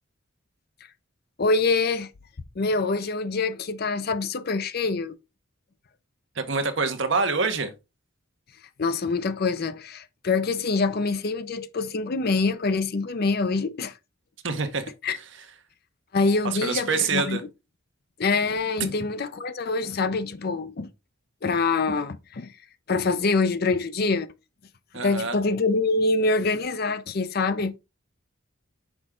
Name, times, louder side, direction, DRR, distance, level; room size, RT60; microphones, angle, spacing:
voice 1, 1.4-2.1 2.6-5.2 8.8-13.9 15.0-15.2 16.1-17.4 18.2-20.9 21.4-22.5 22.9-24.3 24.9-27.8, left 3 dB, 50° left, 0.5 m, -25 dB
voice 2, 6.3-7.7 14.4-15.2 16.4-17.4 24.9-25.4, right 4 dB, 60° right, 1.0 m, -26 dB
6.1 x 4.8 x 3.7 m
head